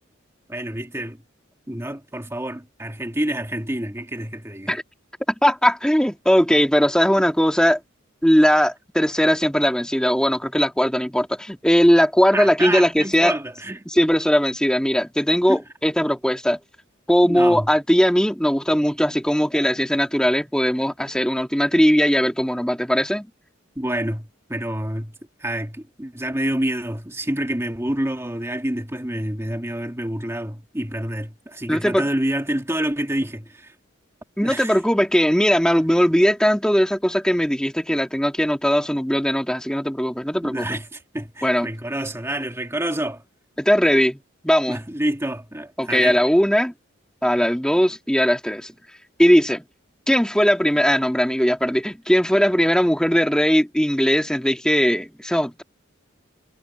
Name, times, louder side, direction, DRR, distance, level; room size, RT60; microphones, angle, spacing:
voice 1, 0.5-1.2 1.7-4.8 12.3-13.9 15.5-15.6 17.2-17.7 23.8-25.2 25.4-33.7 34.4-34.8 40.4-43.2 44.7-46.2, right 1 dB, 15° right, 2.0 m, -28 dB
voice 2, 5.4-7.8 8.2-13.4 13.9-16.6 17.1-23.3 31.7-32.1 34.4-40.8 41.4-41.7 43.6-44.2 44.4-44.8 45.8-46.7 47.2-48.7 49.2-49.6 50.1-55.6, equal, 5° left, 2.1 m, -19 dB
head